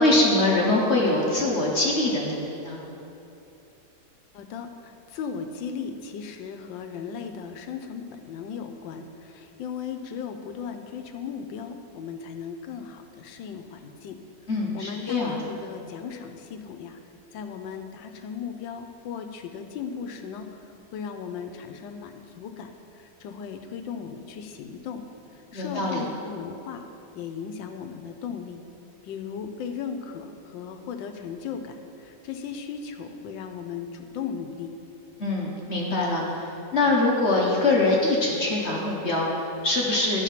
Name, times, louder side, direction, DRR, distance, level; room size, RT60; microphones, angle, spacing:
voice 1, 0.0-2.8 14.5-15.5 25.5-26.0 35.2-40.2, left 2 dB, 45° left, -2 dB, 1.0 m, -23 dB
voice 2, 4.3-14.2 14.7-17.0 17.3-20.5 20.9-22.7 23.2-25.0 25.5-26.8 27.1-28.6 29.0-31.8 32.1-34.7, left 6 dB, 85° left, 6 dB, 1.4 m, -36 dB
10.5 x 4.5 x 5.7 m, 2.9 s
omnidirectional pair, 2.0 m